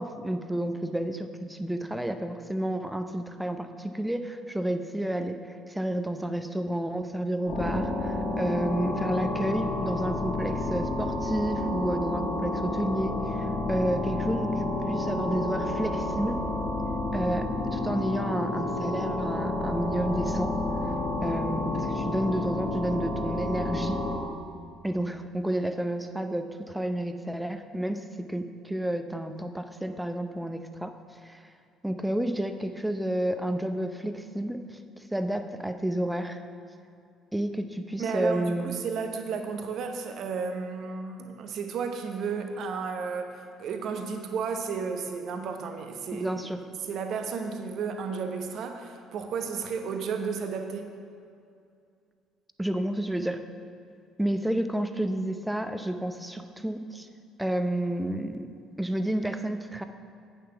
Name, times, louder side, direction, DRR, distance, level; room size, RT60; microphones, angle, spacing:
voice 1, 0.0-5.4 5.7-16.4 17.1-20.5 21.2-24.0 24.8-30.9 31.2-31.4 31.8-34.8 35.1-36.4 37.3-38.7 46.1-46.6 52.6-53.4 54.2-57.1 57.4-58.5 58.8-59.8, right 1 dB, 5° right, 8 dB, 0.7 m, -30 dB
sound 1, 7.5-24.2, left 2 dB, 55° left, 2.4 m, -30 dB
voice 2, 38.0-46.3 46.9-50.9, right 5 dB, 55° right, 5 dB, 1.0 m, -33 dB
8.6 x 7.0 x 5.7 m, 2.4 s
hypercardioid pair, 55°, 0 cm